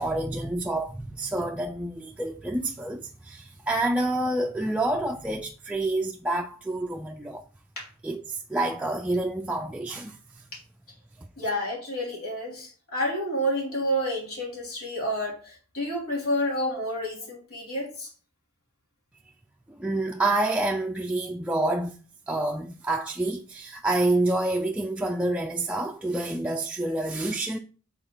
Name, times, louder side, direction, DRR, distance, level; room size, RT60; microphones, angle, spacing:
voice 1, 0.0-7.4 8.0-10.2 19.8-22.0 22.3-27.6, right 2 dB, 5° right, 0.3 m, -28 dB
voice 2, 11.4-18.1, equal, 85° left, 3.1 m, -29 dB
8.0 x 4.1 x 3.8 m
head